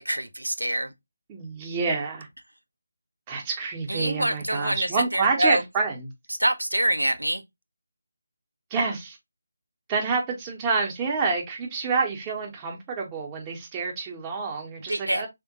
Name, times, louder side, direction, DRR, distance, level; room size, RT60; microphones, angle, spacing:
voice 1, 0.1-0.9 3.9-5.6 6.4-7.4 14.9-15.3, right 1 dB, 80° right, 0.4 m, -25 dB
voice 2, 1.3-2.3 3.3-6.1 8.7-9.2 9.9-15.3, right 4 dB, 15° right, 0.7 m, -28 dB
3.4 x 2.1 x 2.6 m
figure-of-eight pair, 155°, 0 cm